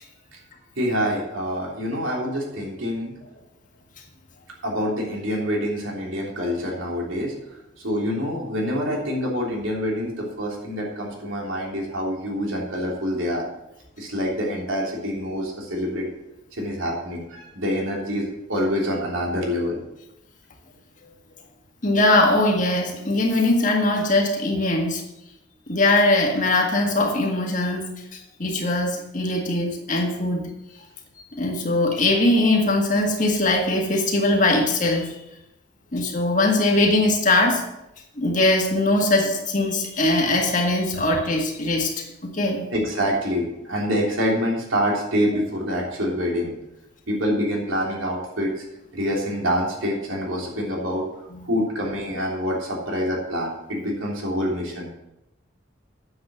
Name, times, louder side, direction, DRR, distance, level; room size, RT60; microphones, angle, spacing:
voice 1, 0.8-3.1 4.6-7.3 7.8-13.4 14.0-16.1 16.5-19.8 40.9-41.0 42.7-46.5 47.1-48.5 48.9-51.1 51.4-54.9, equal, 80° right, -2 dB, 3.2 m, -26 dB
voice 2, 21.8-25.0 25.7-27.9 28.4-30.5 31.3-35.1 35.9-37.6 38.2-42.6 51.3-51.4, left 2 dB, 40° left, 1 dB, 1.8 m, -21 dB
9.2 x 7.7 x 6.3 m, 0.89 s
head